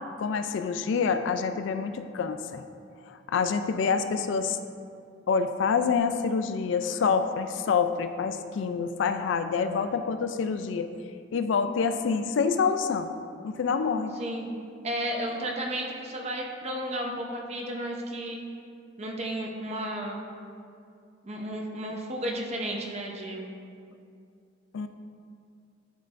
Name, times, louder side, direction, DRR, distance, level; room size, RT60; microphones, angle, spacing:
voice 1, 0.2-2.6 3.1-4.6 5.3-10.9 11.3-13.1 13.4-14.1 24.7-24.9, left 5 dB, 65° left, 9 dB, 0.3 m, -27 dB
voice 2, 14.2-14.5 14.8-18.4 19.0-20.2 21.2-23.5, right 1 dB, 35° right, 0 dB, 0.7 m, -33 dB
11.0 x 4.4 x 2.5 m, 2.4 s
head